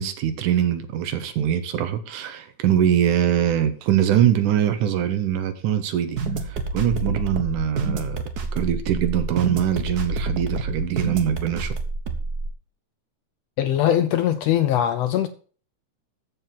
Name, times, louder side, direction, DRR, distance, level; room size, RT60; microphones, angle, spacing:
voice 1, 0.0-8.2 8.5-11.7, right 10 dB, 85° right, 2.5 m, -23 dB
sound 1, 6.2-12.5, right 3 dB, 70° right, 0.9 m, -28 dB
voice 2, 13.6-15.3, left 11 dB, 80° left, 1.5 m, -21 dB
14.0 x 4.9 x 7.4 m
omnidirectional pair, 3.5 m